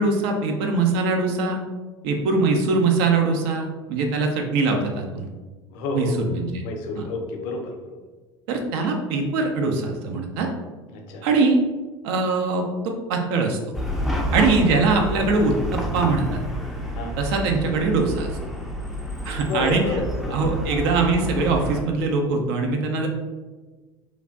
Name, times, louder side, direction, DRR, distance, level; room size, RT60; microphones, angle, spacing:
voice 1, 0.0-1.6 2.0-5.3 5.9-6.6 7.0-7.1 8.5-10.5 11.2-11.6 12.0-13.6 14.3-16.4 17.2-18.3 19.2-19.8 20.3-23.1, right 3 dB, 55° right, 3 dB, 0.5 m, -22 dB
voice 2, 5.7-6.3 6.6-8.0 10.9-11.3 14.2-14.3 16.9-17.2 19.2-20.4, left 3 dB, 55° left, 3 dB, 0.5 m, -30 dB
Chatter / Car passing by / Traffic noise roadway noise, 13.7-21.8, equal, ahead, 0.4 m, -29 dB
3.1 x 2.4 x 2.5 m, 1.3 s
figure-of-eight pair, 70°, 15 cm